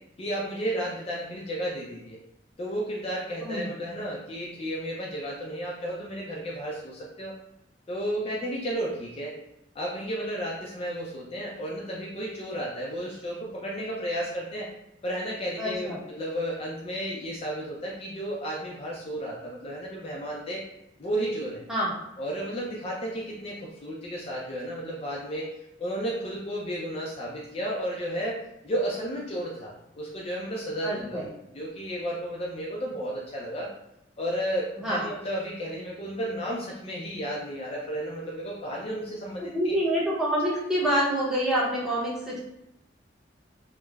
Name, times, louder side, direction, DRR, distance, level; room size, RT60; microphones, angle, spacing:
voice 1, 0.2-2.2 2.6-7.3 7.9-9.3 9.7-14.7 15.0-20.6 21.0-21.6 22.2-25.5 25.8-28.4 28.6-33.7 34.2-39.8, equal, 35° left, -4 dB, 0.4 m, -33 dB
voice 2, 3.4-3.7 15.6-16.0 21.7-21.9 30.8-31.3 34.8-35.0 39.4-42.4, equal, 5° right, -7 dB, 0.7 m, -27 dB
3.1 x 2.0 x 2.2 m, 0.83 s
head